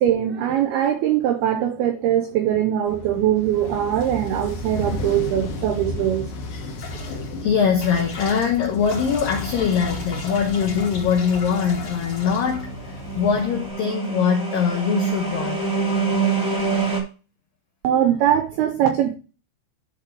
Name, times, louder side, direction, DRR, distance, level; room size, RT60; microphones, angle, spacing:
voice 1, 0.0-6.3 17.8-19.1, right 10 dB, 85° right, 2.2 m, -21 dB
sound 1, 2.9-13.4, left 2 dB, 60° left, 2.7 m, -34 dB
sound 2, 6.8-13.7, left 2 dB, 40° left, 2.4 m, -36 dB
voice 2, 7.4-15.6, left 6 dB, 80° left, 2.0 m, -22 dB
sound 3, 12.3-17.0, right 5 dB, 5° right, 0.5 m, -25 dB
12.5 x 4.4 x 3.3 m
omnidirectional pair, 5.5 m